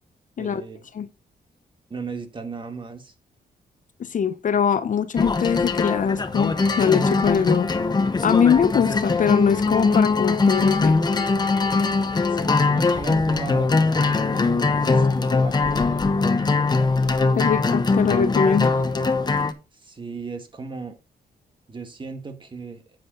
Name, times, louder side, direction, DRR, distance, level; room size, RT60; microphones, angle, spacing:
voice 1, 0.4-0.9 1.9-3.1 12.3-16.1 19.7-21.0 21.7-22.8, right 4 dB, 30° right, 1.8 m, -36 dB
voice 2, 4.0-7.7 8.2-11.0 17.4-18.8, left 7 dB, 50° left, 0.8 m, -22 dB
sound 1, 5.2-19.5, left 3 dB, 25° left, 1.0 m, -21 dB
9.6 x 7.8 x 3.9 m
cardioid pair, 115°, 17 cm